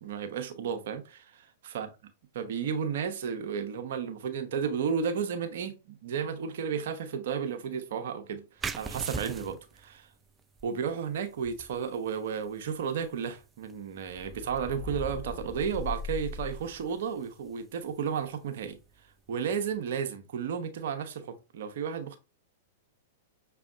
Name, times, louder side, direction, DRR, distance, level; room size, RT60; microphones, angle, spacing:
voice 1, 0.0-1.9 2.3-8.4 8.8-10.1 10.6-18.8 19.3-22.2, right 7 dB, 65° right, 0.9 m, -33 dB
sound 1, 8.6-19.9, right 4 dB, 15° right, 0.3 m, -45 dB
sound 2, 14.1-16.9, left 3 dB, 35° left, 1.3 m, -39 dB
6.2 x 3.3 x 2.4 m
hypercardioid pair, 110°, 0 cm